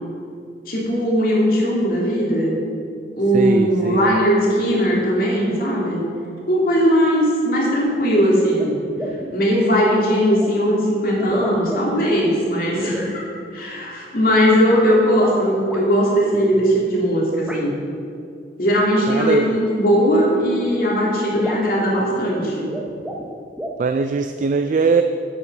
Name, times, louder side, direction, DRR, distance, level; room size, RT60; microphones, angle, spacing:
voice 1, 0.7-2.5 3.2-6.0 6.5-8.7 9.3-13.2 13.5-17.8 18.6-22.7, equal, 55° left, -4 dB, 2.6 m, -19 dB
voice 2, 3.3-4.1 19.1-19.6 23.8-25.0, right 4 dB, 45° right, 7 dB, 0.4 m, -20 dB
sound 1, 7.9-8.0 8.6-8.7 9.0-9.3 10.4-10.5 11.2-12.1 12.8-13.1 15.1-15.8 17.5-17.6 18.9-19.0 20.2-20.3 20.7-20.8 21.0-21.1 21.3-21.7 22.6-23.3 23.6-23.8, right 1 dB, 5° right, 0.9 m, -31 dB
8.7 x 8.3 x 6.1 m, 2.4 s
head